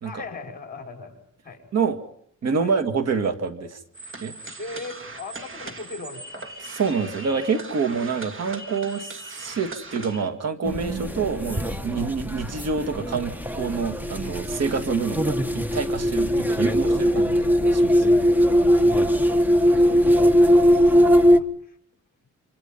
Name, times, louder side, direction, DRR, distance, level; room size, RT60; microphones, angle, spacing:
voice 1, 0.0-1.7 2.6-2.7 4.6-6.5 18.6-20.2 20.8-21.8, left 3 dB, 30° left, 3 dB, 5.8 m, -40 dB
voice 2, 2.4-3.8 4.2-4.4 6.7-18.1 19.8-20.2, right 5 dB, 60° right, 6 dB, 2.0 m, -27 dB
sound 1, 3.9-10.3, right 2 dB, 45° right, 2.6 m, -39 dB
sound 2, 10.6-21.4, equal, 5° right, 1.2 m, -20 dB
27.5 x 26.5 x 5.5 m, 0.66 s
wide cardioid pair, 130°, 30 cm